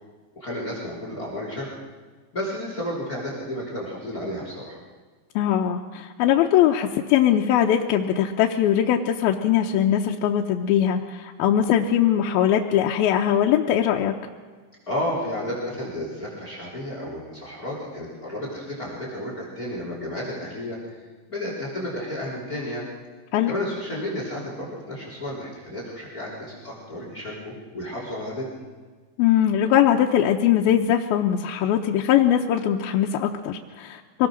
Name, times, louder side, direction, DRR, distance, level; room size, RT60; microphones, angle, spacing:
voice 1, 0.3-1.7 2.3-4.8 14.9-21.0 21.3-22.9 23.4-28.6, left 1 dB, 25° left, -3 dB, 3.9 m, -32 dB
voice 2, 5.4-14.1 23.3-23.5 29.2-34.3, left 10 dB, 85° left, 1 dB, 2.8 m, -21 dB
24.5 x 19.0 x 6.4 m, 1.5 s
omnidirectional pair, 4.2 m